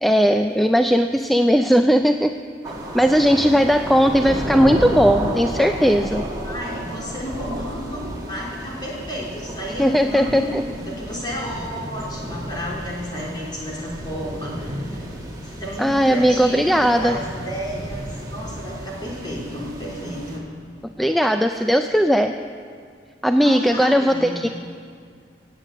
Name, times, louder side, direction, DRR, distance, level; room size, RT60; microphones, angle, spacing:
voice 1, 0.0-2.3 2.9-6.2 9.8-10.6 15.8-17.2 21.0-22.3 23.2-24.5, equal, ahead, 7 dB, 0.3 m, -18 dB
sound 1, 2.6-20.4, equal, 20° right, 2.0 m, -32 dB
voice 2, 6.4-15.1 15.4-20.5 23.3-24.4, equal, 25° left, -4 dB, 3.4 m, -32 dB
16.5 x 8.3 x 8.4 m, 2.2 s
head